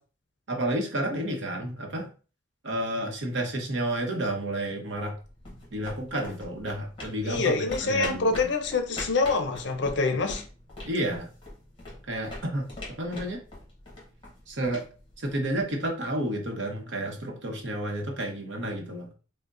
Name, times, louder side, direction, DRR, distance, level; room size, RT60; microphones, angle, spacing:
voice 1, 0.5-2.1 2.6-5.1 5.7-8.5 10.8-11.3 12.1-13.4 14.5-14.8 15.2-19.1, right 1 dB, 70° right, 0.8 m, -31 dB
sound 1, 5.1-15.8, left 1 dB, 25° left, 1.3 m, -43 dB
voice 2, 7.2-10.4, left 3 dB, 65° left, 0.5 m, -26 dB
5.2 x 2.1 x 2.5 m
head